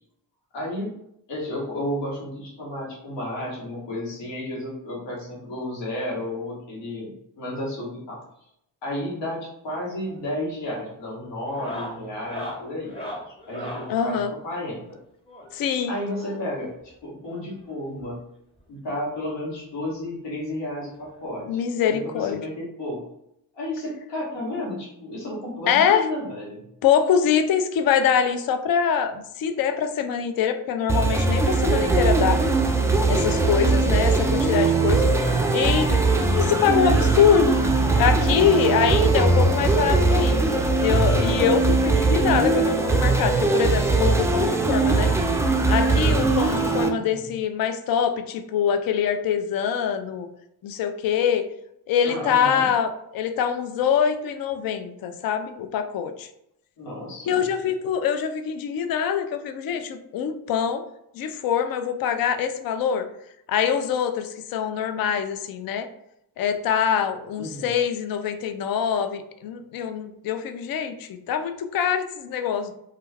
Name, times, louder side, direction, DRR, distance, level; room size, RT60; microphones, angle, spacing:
voice 1, 0.5-0.9 1.3-7.1 7.4-8.2 8.8-12.9 13.3-14.8 15.9-18.2 18.7-23.0 23.5-26.6 33.5-33.7 36.0-36.4 47.0-47.2 52.0-52.7 56.8-57.4 67.4-67.7, left 1 dB, 80° left, -4 dB, 1.1 m, -32 dB
sound 1, 9.9-10.2 10.5-10.9 11.4-14.0 15.3-16.7 17.7-17.8 18.0-18.1 18.6-18.7 20.0-20.1 21.4-21.5, equal, 15° left, 0.8 m, -38 dB
voice 2, 13.9-14.3 15.5-15.9 21.5-22.4 25.7-26.1 26.8-32.4 33.1-36.0 36.3-37.6 38.0-40.4 40.8-45.1 45.7-50.3 50.6-51.5 51.9-56.3 57.3-60.8 61.1-63.1 63.5-65.9 66.4-72.7, left 8 dB, 55° left, 8 dB, 0.5 m, -24 dB
sound 2, 30.9-46.9, right 3 dB, 5° right, 0.3 m, -20 dB
2.3 x 2.2 x 3.2 m, 0.78 s
supercardioid pair, 55°, 43 cm